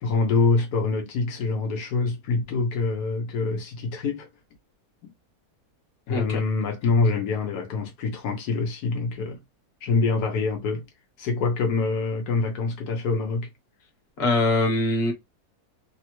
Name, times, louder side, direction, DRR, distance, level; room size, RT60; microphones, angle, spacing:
voice 1, 0.0-4.3 5.0-5.1 6.1-9.4 9.8-10.8 11.2-13.5, left 4 dB, 85° left, 1.3 m, -25 dB
voice 2, 6.1-6.4 14.2-15.1, left 2 dB, 45° left, 1.2 m, -22 dB
3.4 x 2.1 x 2.9 m
omnidirectional pair, 1.6 m